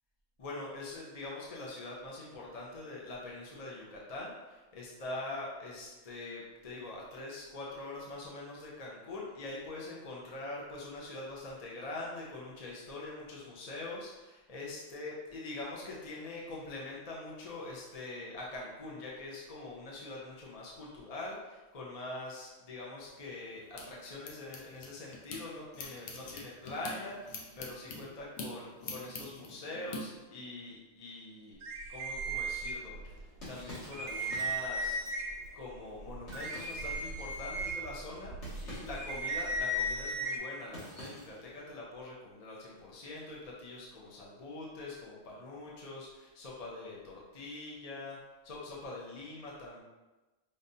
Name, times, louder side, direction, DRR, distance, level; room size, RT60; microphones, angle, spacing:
voice 1, 0.4-31.6 31.9-35.0 35.5-38.4 38.6-48.2 48.4-49.8, left 2 dB, 40° left, -4 dB, 0.6 m, -43 dB
sound 1, 23.1-25.4 25.7-30.0, left 3 dB, 85° left, 1.0 m, -45 dB
sound 2, 31.6-33.2 33.6-33.7 33.9-35.5 36.0-40.4, right 1 dB, 65° right, 0.9 m, -36 dB
sound 3, 32.9-41.6, left 1 dB, 60° left, 1.8 m, -51 dB
5.2 x 2.6 x 2.6 m, 1.1 s
omnidirectional pair, 1.3 m